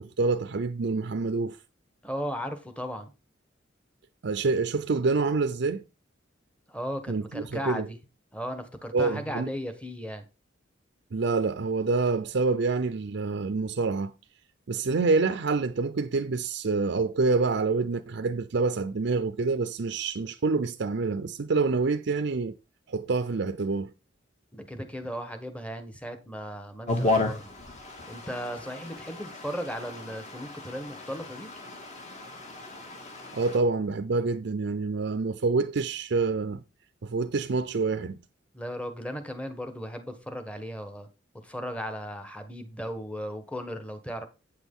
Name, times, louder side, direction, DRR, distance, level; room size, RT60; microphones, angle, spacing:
voice 1, 0.0-1.6 4.2-5.8 7.1-7.9 8.9-9.5 11.1-14.1 14.7-22.5 22.9-23.9 33.3-36.6 37.0-38.2, right 4 dB, 65° right, 0.5 m, -27 dB
voice 2, 2.0-3.1 6.7-8.0 8.3-10.3 24.5-27.5 28.1-31.5 38.5-41.1 41.4-44.3, equal, 5° left, 1.2 m, -36 dB
sound 1, 26.9-33.6, left 2 dB, 40° left, 2.0 m, -33 dB
8.7 x 6.2 x 3.7 m
head